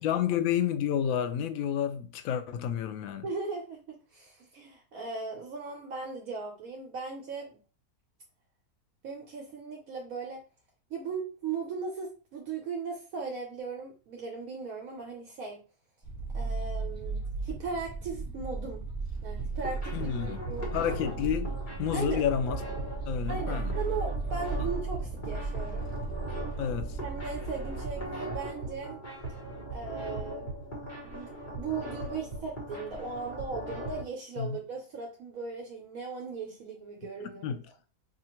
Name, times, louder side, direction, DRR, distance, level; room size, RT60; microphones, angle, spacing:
voice 1, 0.0-3.2 19.9-20.4 20.7-21.5 21.8-22.6 23.1-23.7 24.6-24.7 26.6-27.0 34.4-34.6 37.4-37.6, left 9 dB, 70° left, 0.9 m, -30 dB
voice 2, 3.2-7.6 9.0-10.4 10.9-15.6 16.3-18.8 19.2-20.7 21.9-22.2 23.3-25.9 27.0-29.0 29.7-30.5 31.0-31.3 31.6-37.6, right 4 dB, 70° right, 1.1 m, -38 dB
sound 1, 16.0-28.1, right 3 dB, 15° left, 1.0 m, -36 dB
sound 2, 19.4-34.0, right 1 dB, 35° left, 1.2 m, -39 dB
4.8 x 2.5 x 2.9 m
omnidirectional pair, 1.6 m